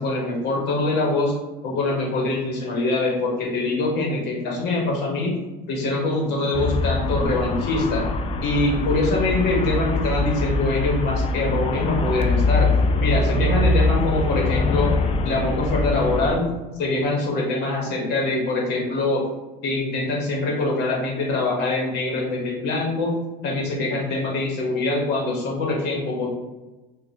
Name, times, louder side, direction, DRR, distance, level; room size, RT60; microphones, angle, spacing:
voice 1, 0.0-1.3 1.6-5.3 5.7-8.1 8.4-12.7 13.0-14.9 15.2-16.4 16.8-19.2 19.6-23.1 23.4-26.3, left 2 dB, 60° left, -2 dB, 1.2 m, -24 dB
Traffic noise roadway noise, 6.5-16.4, left 2 dB, 30° left, 0.3 m, -23 dB
2.9 x 2.4 x 4.0 m, 1.1 s
cardioid pair, 120°, 20 cm